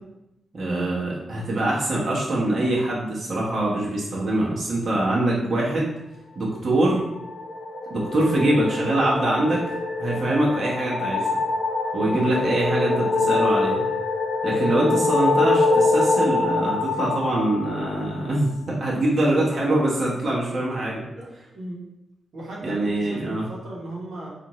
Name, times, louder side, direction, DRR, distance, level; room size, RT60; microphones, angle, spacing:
voice 1, 0.5-5.9 6.3-7.0 7.9-9.6 10.0-11.3 11.9-13.8 14.4-21.0 22.6-23.5, right 1 dB, 50° right, -5 dB, 1.0 m, -23 dB
voice 2, 5.3-5.7 12.0-12.3 19.4-19.6 21.1-21.8 22.3-24.3, right 1 dB, 85° right, -5 dB, 1.0 m, -36 dB
sound 1, 6.9-18.3, left 3 dB, 50° left, 0.5 m, -24 dB
4.2 x 2.5 x 3.0 m, 0.91 s
wide cardioid pair, 110°, 0 cm